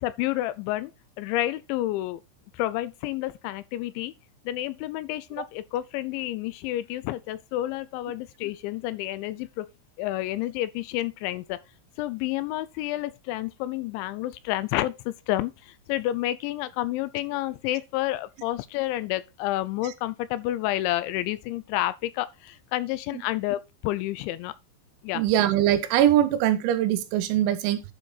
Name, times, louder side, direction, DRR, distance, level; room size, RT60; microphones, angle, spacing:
voice 1, 0.0-0.9 1.2-2.2 2.5-4.1 4.5-9.7 10.0-11.6 12.0-24.5 25.0-25.2, left 15 dB, 85° left, 2.9 m, -30 dB
voice 2, 25.1-27.8, right 12 dB, 85° right, 3.3 m, -22 dB
11.5 x 5.0 x 4.0 m
omnidirectional pair, 5.4 m